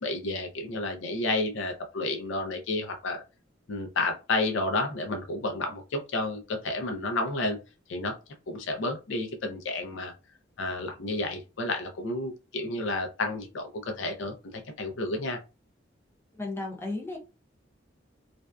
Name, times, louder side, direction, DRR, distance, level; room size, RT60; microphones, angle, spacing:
voice 1, 0.0-3.2 3.7-7.6 7.9-8.1 8.5-10.1 10.6-15.4, left 2 dB, 75° left, 4 dB, 0.5 m, -31 dB
voice 2, 16.3-17.2, left 2 dB, 15° left, -1 dB, 0.6 m, -34 dB
2.5 x 2.2 x 2.2 m, 0.29 s
head